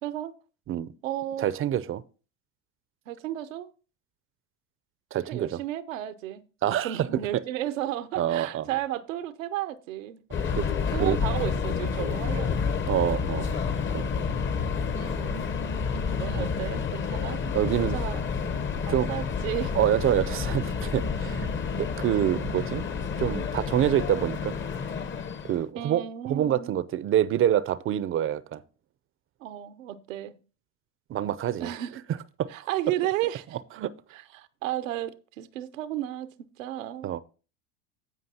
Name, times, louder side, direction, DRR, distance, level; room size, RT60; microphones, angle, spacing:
voice 1, 0.0-0.3 1.0-1.5 3.1-3.7 5.3-10.2 10.9-12.7 14.9-15.5 16.2-18.2 18.9-19.7 25.7-26.7 29.4-30.4 31.6-32.0 32.5-33.6 34.1-37.1, right 13 dB, 85° right, 0.8 m, -33 dB
voice 2, 1.4-2.0 5.1-5.6 6.6-7.0 8.2-8.7 10.5-10.7 11.0-11.2 12.9-13.6 13.9-14.2 16.4-16.5 17.5-18.0 18.9-19.1 19.8-21.5 21.8-22.8 23.2-24.6 25.4-28.6 31.1-31.7 32.4-32.5 33.8-33.9 37.0-37.2, right 11 dB, 35° right, 0.6 m, -26 dB
Subway metro underground, 10.3-25.6, left 5 dB, 30° left, 0.9 m, -29 dB
15.5 x 5.2 x 2.8 m
hypercardioid pair, 90°, 38 cm